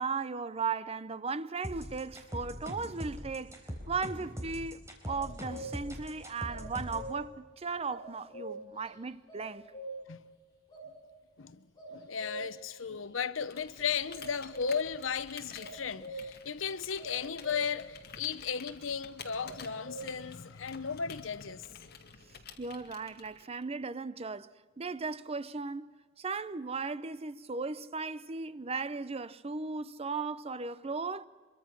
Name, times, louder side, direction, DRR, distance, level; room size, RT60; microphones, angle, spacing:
voice 1, 0.0-9.7 22.6-24.5 24.8-31.3, right 4 dB, 30° right, 0.6 m, -37 dB
sound 1, 1.6-7.1, equal, 15° right, 4.2 m, -41 dB
sound 2, 5.0-6.0 6.5-7.4 7.9-8.9 9.3-10.2 10.7-10.9 11.8-12.8 14.1-15.0 15.6-16.5 17.0-17.9 19.4-20.3, right 1 dB, 20° left, 7.5 m, -44 dB
voice 2, 11.4-21.9, left 6 dB, 85° left, 0.8 m, -35 dB
Computer keyboard, 13.3-23.6, left 6 dB, 55° left, 2.1 m, -51 dB
25.0 x 23.5 x 6.0 m
head